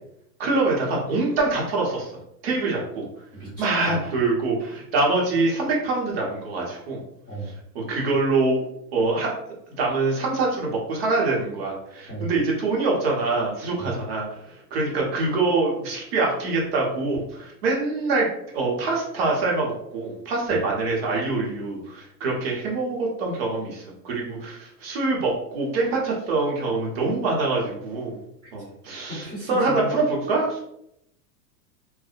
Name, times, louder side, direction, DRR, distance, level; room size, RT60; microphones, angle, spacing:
voice 1, 0.4-2.1 2.4-3.0 3.6-7.0 7.7-8.6 8.9-9.3 9.8-18.3 18.5-28.2 28.5-30.6, right 3 dB, 40° right, -2 dB, 0.7 m, -25 dB
voice 2, 3.4-4.1 7.3-7.5 12.1-12.3 13.8-13.9 20.5-20.6 29.1-29.9, right 1 dB, 10° left, -14 dB, 0.9 m, -34 dB
2.6 x 2.1 x 2.4 m, 0.76 s
hypercardioid pair, 160°, 49 cm